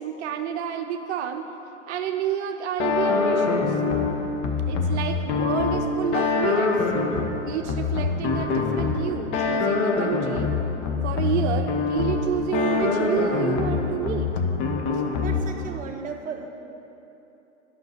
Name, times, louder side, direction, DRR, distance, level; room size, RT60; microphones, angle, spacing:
voice 1, 0.0-1.5 1.9-3.8 4.7-6.8 7.4-10.5 11.0-14.3 14.9-15.0, right 9 dB, 65° right, 6 dB, 0.6 m, -29 dB
sound 1, 2.8-15.7, left 4 dB, 50° left, 1.2 m, -25 dB
voice 2, 15.2-16.6, right 5 dB, 20° right, 3 dB, 0.9 m, -35 dB
8.6 x 5.8 x 6.5 m, 2.9 s
hypercardioid pair, 100°, 37 cm